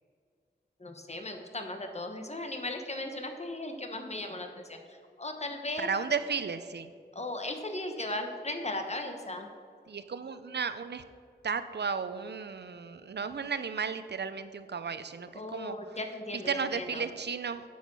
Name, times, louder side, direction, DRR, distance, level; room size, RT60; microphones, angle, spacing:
voice 1, 0.8-5.9 7.1-9.5 15.3-17.0, left 2 dB, 40° left, 5 dB, 1.1 m, -37 dB
voice 2, 5.8-6.9 9.9-11.0 11.4-16.0 16.5-17.6, right 5 dB, 70° right, 12 dB, 0.6 m, -34 dB
8.4 x 7.2 x 6.1 m, 2.2 s
wide cardioid pair, 80°, 18 cm